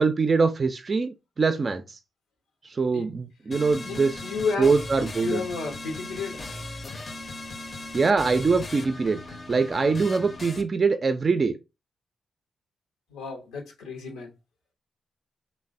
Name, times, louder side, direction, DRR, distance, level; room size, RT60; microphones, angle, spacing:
voice 1, 0.0-2.0 2.6-4.2 4.6-5.4 7.9-9.2 9.5-11.6, right 4 dB, 45° right, 0.3 m, -23 dB
sound 1, 3.5-10.6, left 2 dB, 45° left, 0.5 m, -38 dB
voice 2, 3.8-4.7 5.2-6.4 13.1-14.3, left 4 dB, 85° left, 0.6 m, -31 dB
3.2 x 2.0 x 2.4 m
hypercardioid pair, 40°, 0 cm